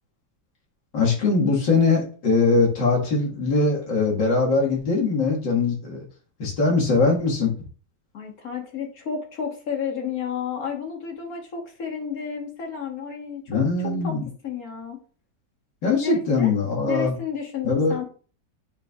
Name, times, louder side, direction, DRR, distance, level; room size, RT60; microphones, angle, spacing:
voice 1, 0.9-6.1 6.4-7.5 13.5-14.3 15.8-17.2 17.6-18.0, left 3 dB, 90° left, -2 dB, 2.6 m, -21 dB
voice 2, 8.1-13.6 14.0-14.1 14.4-15.0 16.0-16.5 16.8-18.0, left 7 dB, 55° left, 1 dB, 1.8 m, -31 dB
10.0 x 4.3 x 2.4 m, 0.40 s
omnidirectional pair, 1.9 m